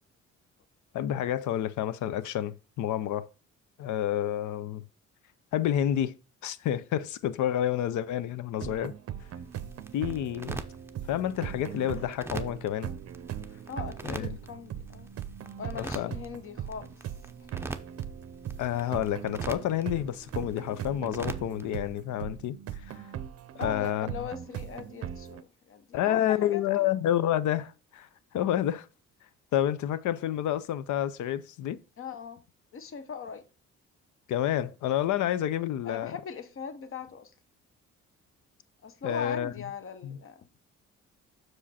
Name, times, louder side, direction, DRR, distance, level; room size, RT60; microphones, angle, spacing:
voice 1, 0.9-3.3 3.8-4.8 5.5-6.1 6.4-8.9 9.9-10.6 11.1-12.9 14.1-14.4 15.7-16.1 18.6-23.0 23.5-24.1 25.9-28.9 29.5-31.8 34.3-36.1 39.0-39.5 40.0-40.2, left 11 dB, 75° left, 0.6 m, -29 dB
sound 1, 8.6-25.4, right 9 dB, 50° right, 0.6 m, -40 dB
sound 2, 9.3-21.9, right 2 dB, 10° right, 0.5 m, -44 dB
voice 2, 13.7-15.1 15.6-17.0 17.4-17.5 23.6-26.9 32.0-32.4 32.7-33.5 35.1-35.3 35.8-37.3 38.8-40.5, left 6 dB, 45° left, 0.9 m, -40 dB
6.2 x 5.0 x 4.2 m
cardioid pair, 90°, 30 cm